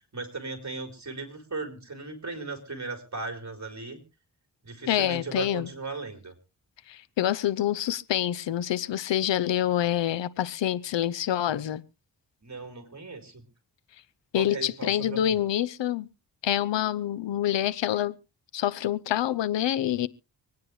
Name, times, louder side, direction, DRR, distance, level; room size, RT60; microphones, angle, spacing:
voice 1, 0.0-4.0 4.6-6.3 12.4-13.4 14.3-15.4, right 3 dB, 40° right, 4.0 m, -37 dB
voice 2, 4.9-5.7 6.9-11.8 14.3-16.1 16.4-18.1 18.5-20.1, left 11 dB, 80° left, 0.8 m, -26 dB
25.5 x 9.6 x 3.2 m
cardioid pair, 65°, 43 cm